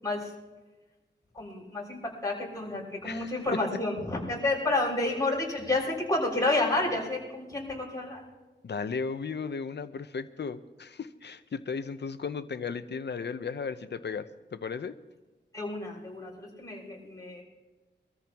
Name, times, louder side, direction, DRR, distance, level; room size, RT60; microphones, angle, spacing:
voice 1, 1.3-8.2 15.5-17.4, left 2 dB, 20° left, -3 dB, 6.5 m, -30 dB
voice 2, 3.0-3.4 8.6-15.0, left 5 dB, 65° left, 11 dB, 0.9 m, -35 dB
24.5 x 14.0 x 3.1 m, 1.2 s
wide cardioid pair, 80°, 19 cm